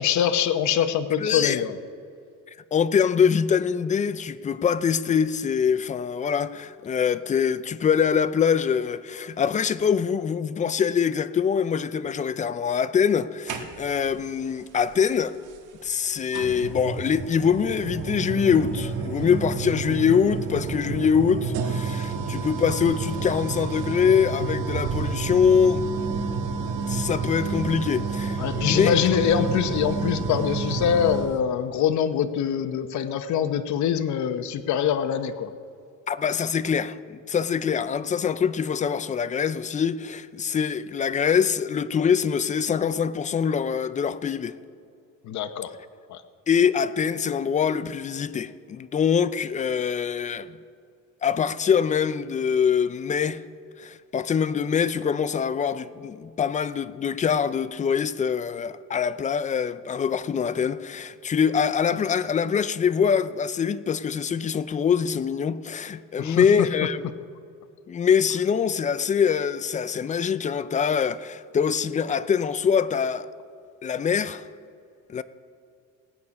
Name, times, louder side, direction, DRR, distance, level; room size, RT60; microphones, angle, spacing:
voice 1, 0.0-1.8 28.4-35.5 45.2-45.7 46.1-46.2 66.2-66.7, left 8 dB, 60° left, 0.9 m, -24 dB
voice 2, 1.2-1.6 2.7-15.4 15.8-25.8 26.9-29.0 36.1-44.5 46.5-50.6 51.2-53.4 53.8-67.1 67.9-73.3 73.8-74.5 75.1-75.2, left 7 dB, 25° left, 0.3 m, -24 dB
sound 1, 13.5-14.1 15.5-15.6 16.3-31.3, right 5 dB, 70° right, 1.4 m, -30 dB
18.5 x 8.6 x 5.3 m
cardioid pair, 135°, 32 cm